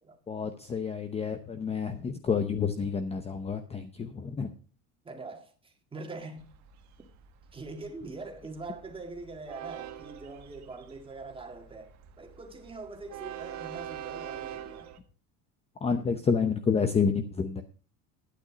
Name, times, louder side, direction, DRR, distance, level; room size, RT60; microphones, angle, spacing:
voice 1, 0.3-4.5 15.8-17.6, left 5 dB, 15° left, 0.7 m, -29 dB
voice 2, 5.0-6.5 7.5-14.9, right 3 dB, 15° right, 1.9 m, -43 dB
Train, 6.4-15.0, right 10 dB, 50° right, 1.6 m, -45 dB
11.5 x 9.3 x 5.1 m
cardioid pair, 160°, 36 cm